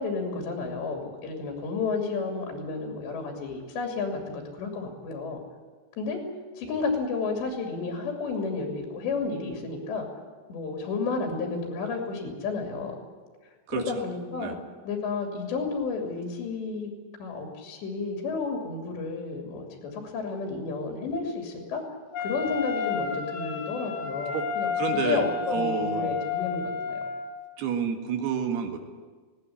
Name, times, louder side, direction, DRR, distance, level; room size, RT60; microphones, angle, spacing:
voice 1, 0.0-5.4 6.0-6.2 6.6-10.1 10.5-12.9 13.7-14.6 14.8-16.9 17.2-21.8 22.2-27.0, left 4 dB, 85° left, 2 dB, 4.9 m, -31 dB
voice 2, 13.7-14.0 14.4-14.6 24.3-24.5 24.8-26.1 27.6-28.8, right 7 dB, 70° right, 4 dB, 3.7 m, -29 dB
Wind instrument woodwind instrument, 22.1-27.4, left 6 dB, 70° left, 3.2 m, -31 dB
19.0 x 17.5 x 10.0 m, 1.4 s
omnidirectional pair, 4.9 m